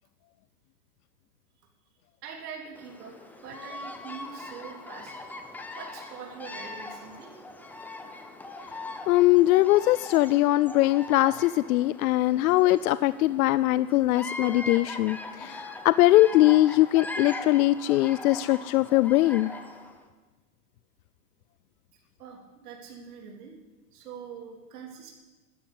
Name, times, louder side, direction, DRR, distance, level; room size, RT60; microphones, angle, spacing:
voice 1, 2.2-3.1 3.4-5.2 5.8-7.3 22.2-23.6 23.9-25.1, right 6 dB, 80° right, -1 dB, 3.6 m, -43 dB
Bird vocalization bird call bird song, 2.7-20.0, left 2 dB, 5° left, 0.6 m, -41 dB
voice 2, 9.1-19.5, left 16 dB, 70° left, 17 dB, 0.5 m, -21 dB
12.5 x 11.5 x 8.4 m, 1.2 s
supercardioid pair, 155°, 46 cm